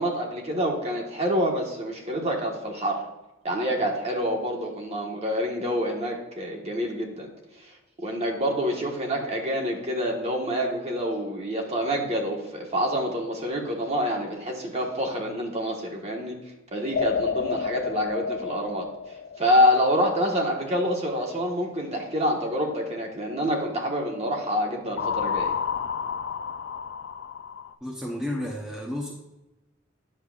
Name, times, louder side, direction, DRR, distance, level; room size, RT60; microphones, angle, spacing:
voice 1, 0.0-3.1 3.4-7.3 8.0-16.4 16.7-18.9 19.4-25.5, equal, 30° right, 0 dB, 1.4 m, -27 dB
sound 1, 16.9-20.2 25.0-27.7, left 6 dB, 55° left, 0.4 m, -30 dB
voice 2, 27.8-29.1, left 1 dB, 5° right, -3 dB, 0.9 m, -32 dB
9.9 x 6.7 x 2.4 m, 0.98 s
head